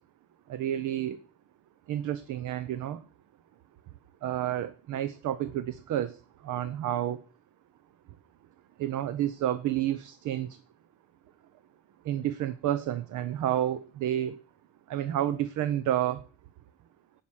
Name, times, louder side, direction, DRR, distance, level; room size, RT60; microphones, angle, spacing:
voice 1, 0.5-1.2 1.9-3.0 4.2-6.2 6.4-7.2 8.8-10.6 12.0-14.4 14.9-16.2, right 12 dB, 80° right, 14 dB, 0.8 m, -30 dB
17.0 x 6.0 x 6.4 m, 0.43 s
cardioid pair, 90°, 30 cm